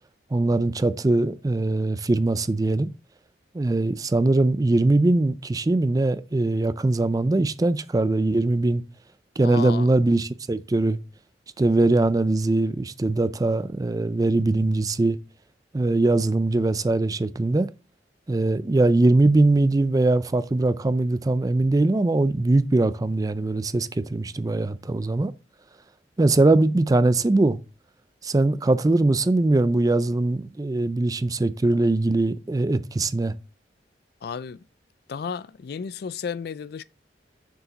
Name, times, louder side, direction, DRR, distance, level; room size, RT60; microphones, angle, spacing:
voice 1, 0.3-2.9 3.5-8.8 9.4-11.0 11.6-15.2 15.7-17.7 18.3-25.3 26.2-27.6 28.2-33.3, right 2 dB, 20° right, 0.4 m, -21 dB
voice 2, 9.4-9.9 34.2-34.6 35.1-36.8, left 6 dB, 60° left, 0.3 m, -33 dB
6.6 x 4.9 x 4.0 m
head